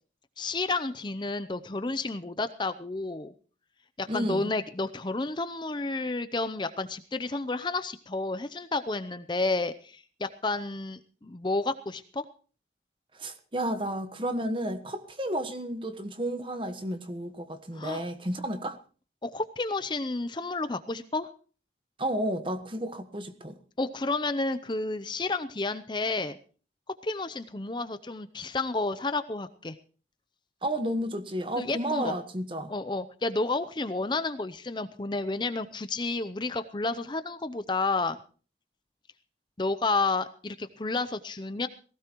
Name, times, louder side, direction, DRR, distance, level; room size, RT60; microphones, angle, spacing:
voice 1, 0.4-3.3 4.0-12.2 17.7-18.0 19.2-21.3 23.8-26.4 27.0-29.7 31.6-32.1 32.7-38.2 39.6-41.7, left 3 dB, 25° left, 0.6 m, -31 dB
voice 2, 4.1-4.5 13.2-18.8 22.0-23.6 30.6-32.7, right 1 dB, 30° right, 1.3 m, -32 dB
18.5 x 16.5 x 3.0 m
head